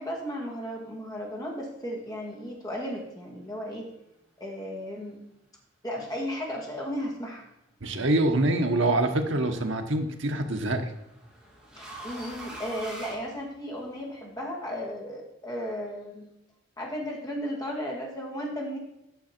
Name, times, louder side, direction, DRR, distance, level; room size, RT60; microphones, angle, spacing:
voice 1, 0.0-3.9 4.4-5.2 5.8-7.5 11.8-16.3 16.8-18.8, equal, 20° left, -2 dB, 1.9 m, -35 dB
voice 2, 7.8-10.9, right 2 dB, 75° right, 5 dB, 1.1 m, -25 dB
sound 1, 10.0-14.0, right 1 dB, ahead, 2.5 m, -44 dB
9.3 x 6.3 x 4.3 m, 0.89 s
head